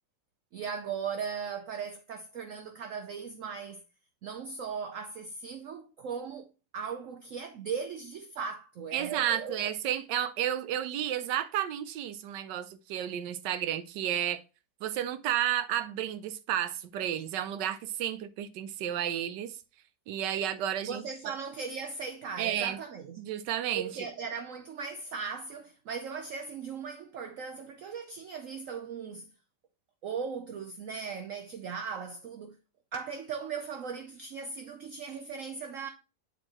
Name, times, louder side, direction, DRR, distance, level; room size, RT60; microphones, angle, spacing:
voice 1, 0.5-3.8 4.2-6.5 6.7-9.6 20.8-23.2 23.7-29.3 30.0-32.6 32.9-35.9, right 6 dB, 65° right, 0.8 m, -38 dB
voice 2, 8.9-14.4 14.8-19.5 20.1-21.3 22.4-22.8 23.2-24.1, right 11 dB, 90° right, 1.3 m, -32 dB
7.6 x 4.4 x 2.9 m
omnidirectional pair, 1.8 m